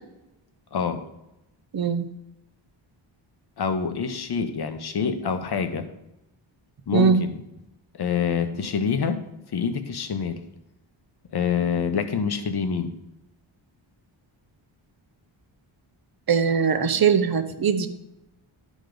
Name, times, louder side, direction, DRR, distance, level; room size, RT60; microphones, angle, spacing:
voice 1, 1.7-2.1 6.9-7.2 16.3-17.9, right 6 dB, 45° right, 10 dB, 0.7 m, -21 dB
voice 2, 3.6-5.9 6.9-7.4 8.0-9.2 9.5-10.4 11.3-12.9, left 6 dB, 50° left, 8 dB, 0.9 m, -26 dB
11.5 x 5.1 x 3.8 m, 0.89 s
wide cardioid pair, 145°, 49 cm